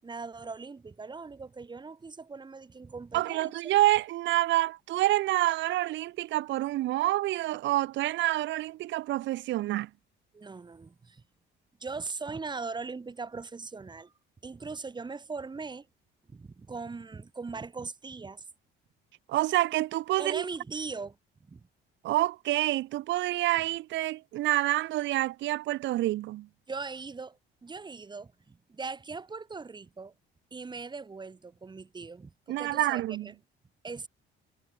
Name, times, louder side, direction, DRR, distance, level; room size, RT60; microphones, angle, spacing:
voice 1, 0.0-3.5 10.3-11.2 11.8-14.1 14.4-15.9 16.3-18.5 20.2-21.7 26.7-30.1 30.5-33.4 33.8-34.1, right 4 dB, 20° right, 5.6 m, -40 dB
voice 2, 3.1-9.9 19.3-20.4 22.0-26.5 32.5-33.3, right 16 dB, 65° right, 0.8 m, -27 dB
cardioid pair, 125°, 20 cm